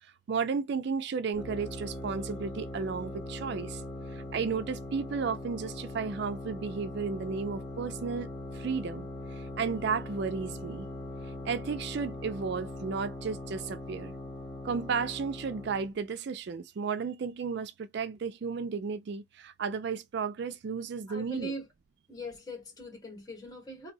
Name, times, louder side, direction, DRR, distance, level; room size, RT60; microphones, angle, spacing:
voice 1, 0.0-3.8 4.1-8.3 8.5-10.9 11.2-14.1 14.6-21.5, right 5 dB, 60° right, 0.4 m, -33 dB
sound 1, 1.3-15.9, left 1 dB, ahead, 1.7 m, -41 dB
voice 2, 21.1-21.6 22.1-23.9, equal, 20° left, 1.8 m, -41 dB
4.0 x 2.6 x 2.6 m
head